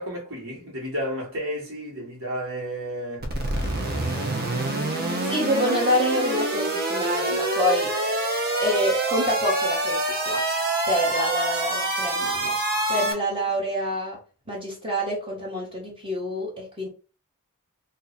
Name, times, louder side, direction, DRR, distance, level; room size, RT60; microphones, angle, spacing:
voice 1, 0.0-3.3, equal, 65° right, 1.6 m, -32 dB
sound 1, 3.2-13.1, right 2 dB, 45° right, 0.7 m, -26 dB
voice 2, 5.0-7.9 8.6-10.4 10.9-12.6 12.9-14.2 14.5-16.9, equal, 25° right, 1.0 m, -27 dB
2.7 x 2.6 x 4.1 m
head